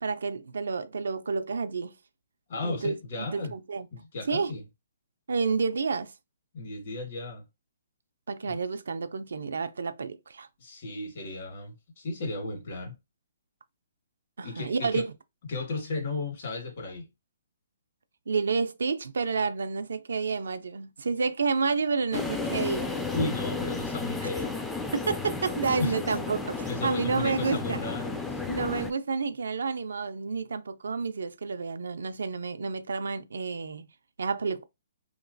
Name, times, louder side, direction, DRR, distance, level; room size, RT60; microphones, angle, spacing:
voice 1, 0.0-1.9 2.6-3.9 4.3-4.5 5.3-6.1 8.3-10.5 14.4-15.1 18.3-23.0 24.9-27.8 28.5-33.9 34.2-34.7, right 4 dB, 80° right, 0.4 m, -30 dB
voice 2, 2.5-3.6 3.9-4.6 6.5-7.4 8.4-8.6 10.6-12.9 14.4-15.1 15.5-17.0 23.1-24.6 25.8-26.0 26.6-28.4, left 2 dB, 60° left, 1.6 m, -34 dB
sound 1, 22.1-28.9, left 4 dB, 5° left, 0.3 m, -33 dB
3.0 x 2.9 x 2.6 m
hypercardioid pair, 145°, 0 cm